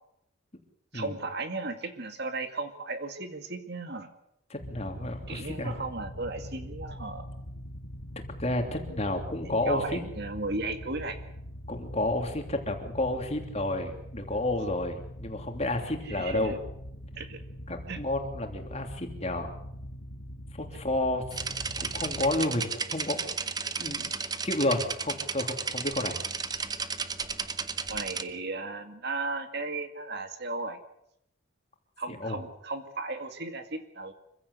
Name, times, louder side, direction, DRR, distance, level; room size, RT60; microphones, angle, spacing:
voice 1, 0.9-4.1 5.3-7.3 9.6-11.2 16.1-16.6 17.2-17.4 17.9-18.0 27.9-30.8 32.0-34.1, right 3 dB, 50° right, 7 dB, 2.2 m, -35 dB
voice 2, 4.5-5.7 8.4-10.0 11.7-16.5 17.7-19.5 20.5-21.3 21.8-23.2 23.8-24.1 24.4-26.2 32.1-32.4, left 1 dB, 30° left, 4 dB, 3.0 m, -31 dB
sound 1, 4.6-22.4, equal, 75° left, 4.0 m, -42 dB
sound 2, 21.3-28.2, right 5 dB, 20° right, 0.8 m, -33 dB
26.0 x 15.5 x 8.3 m, 0.78 s
head